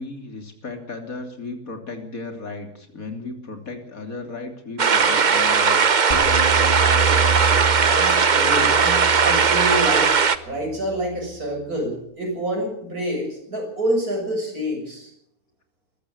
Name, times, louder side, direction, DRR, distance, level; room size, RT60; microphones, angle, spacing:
voice 1, 0.0-5.9, left 3 dB, 70° left, 5 dB, 3.6 m, -35 dB
sound 1, 4.8-10.4, right 5 dB, 35° right, 0.9 m, -18 dB
sound 2, 6.1-11.3, right 4 dB, 25° left, 2.6 m, -28 dB
voice 2, 7.8-10.1 10.4-15.1, equal, 85° right, 1 dB, 7.5 m, -27 dB
21.5 x 14.5 x 8.5 m, 0.73 s
omnidirectional pair, 1.5 m